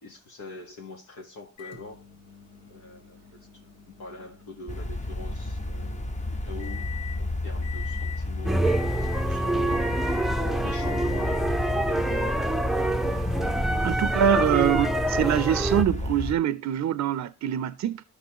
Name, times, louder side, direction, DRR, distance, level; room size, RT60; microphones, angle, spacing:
voice 1, 0.0-2.0 2.7-3.2 4.0-6.1 6.4-12.3, left 3 dB, 85° left, 1.6 m, -44 dB
Microwave oven, 1.6-7.2 7.6-8.2 8.6-9.3 9.7-10.3 10.7-11.5 12.5-12.6 14.6-14.7, left 8 dB, 65° left, 2.0 m, -44 dB
sound 1, 4.7-16.3, left 2 dB, 25° left, 0.9 m, -31 dB
sound 2, 8.5-15.8, right 1 dB, ahead, 0.5 m, -26 dB
voice 2, 13.8-18.0, right 11 dB, 65° right, 0.5 m, -24 dB
13.0 x 5.5 x 2.9 m
cardioid pair, 60°, 30 cm